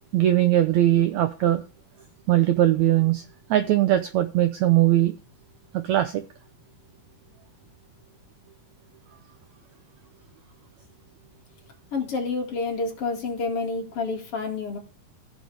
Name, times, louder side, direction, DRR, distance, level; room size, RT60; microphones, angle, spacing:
voice 1, 0.1-1.6 2.3-3.2 3.5-5.1 5.7-6.2, right 13 dB, 75° right, 10 dB, 1.7 m, -20 dB
voice 2, 11.9-14.8, left 4 dB, 45° left, 1 dB, 2.9 m, -29 dB
15.5 x 6.4 x 3.4 m, 0.34 s
omnidirectional pair, 4.0 m